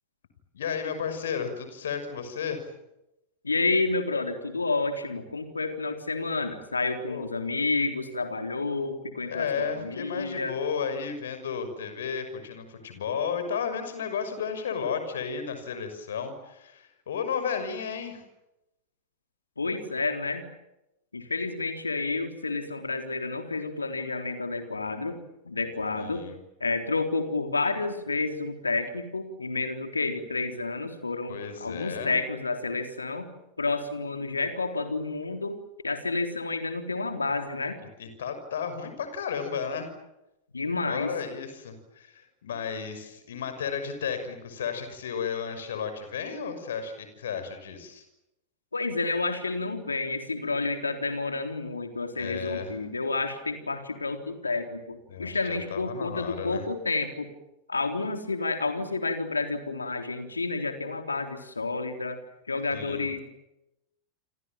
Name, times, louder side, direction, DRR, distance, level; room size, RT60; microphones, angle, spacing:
voice 1, 0.5-2.7 7.0-7.3 9.3-18.2 26.0-26.4 31.3-32.2 38.0-39.9 40.9-48.0 52.2-52.8 55.1-56.7 62.7-63.1, left 6 dB, 60° left, 9 dB, 6.2 m, -33 dB
voice 2, 3.4-10.5 19.6-20.5 21.1-25.2 25.5-26.3 26.6-33.3 33.6-35.6 35.8-37.8 40.5-41.1 48.7-57.3 57.7-62.2 62.5-63.2, left 3 dB, 80° left, 6 dB, 3.8 m, -30 dB
29.0 x 26.0 x 7.6 m, 0.91 s
figure-of-eight pair, 90°, 0 cm